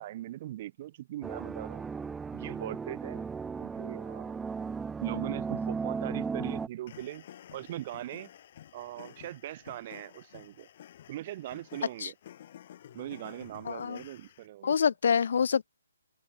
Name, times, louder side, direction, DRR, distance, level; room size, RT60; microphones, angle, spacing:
voice 1, 0.0-1.9 2.3-3.3 3.6-4.4 5.0-7.3 7.5-8.3 8.7-10.7 11.1-12.1 12.9-14.8, right 14 dB, 30° right, 1.9 m, -40 dB
sound 1, 1.2-6.7, right 5 dB, 5° right, 0.8 m, -36 dB
sound 2, 6.9-14.5, left 11 dB, 40° left, 4.6 m, -52 dB
voice 2, 13.7-14.0 14.6-15.7, left 7 dB, 55° left, 0.6 m, -26 dB
open air
hypercardioid pair, 165°, 0 cm